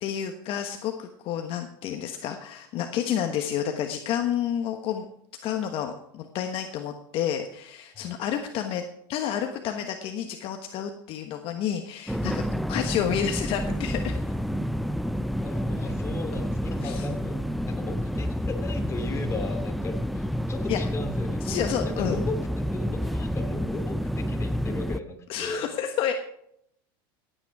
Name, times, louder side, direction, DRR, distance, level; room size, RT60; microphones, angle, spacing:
voice 1, 0.0-5.0 5.4-8.8 9.1-12.4 12.7-14.2 16.8-17.1 20.7-20.8 21.4-22.2 25.3-26.1, left 9 dB, 50° left, 5 dB, 1.3 m, -30 dB
sound 1, 12.1-25.0, equal, ahead, 0.5 m, -29 dB
voice 2, 15.4-21.6 21.8-25.7, left 3 dB, 25° left, 4 dB, 2.7 m, -37 dB
16.5 x 9.1 x 4.8 m, 0.73 s
supercardioid pair, 120°, 12 cm